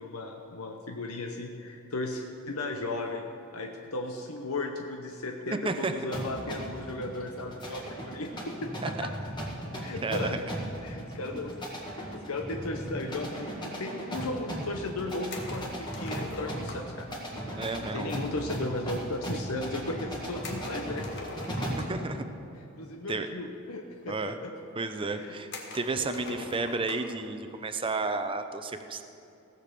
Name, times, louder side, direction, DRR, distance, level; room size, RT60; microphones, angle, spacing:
voice 1, 0.0-3.3 3.5-9.1 9.8-10.4 10.8-11.6 12.1-17.1 17.8-21.1 21.6-22.1 22.6-24.5 25.1-25.4 25.9-26.4, left 2 dB, 85° left, 3 dB, 0.8 m, -36 dB
sound 1, 6.1-22.0, right 1 dB, 20° left, 1.8 m, -37 dB
voice 2, 10.0-10.4 11.3-11.4 17.6-18.1 21.9-22.2 22.6-22.7 23.1-23.3 24.1-24.3 24.7-29.0, right 3 dB, 25° right, 8 dB, 0.6 m, -32 dB
sound 2, 15.3-17.0 20.4-22.1 23.2-23.3 23.6-23.7 24.5-24.6 25.5-27.2, left 3 dB, 55° left, 1.5 m, -43 dB
16.5 x 6.7 x 6.8 m, 2.7 s
head